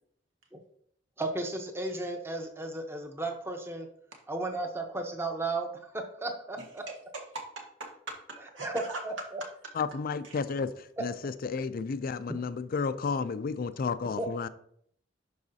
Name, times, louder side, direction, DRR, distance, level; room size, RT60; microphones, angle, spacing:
voice 1, 1.2-3.9 4.3-6.8 8.6-9.4 14.2-14.3, right 2 dB, 15° right, 0.9 m, -34 dB
voice 2, 6.6-9.0 9.4-9.7 10.2-10.3, right 2 dB, 80° right, 1.6 m, -42 dB
voice 3, 9.8-10.7 11.0-14.5, left 5 dB, 50° left, 0.4 m, -32 dB
11.0 x 4.8 x 2.7 m
head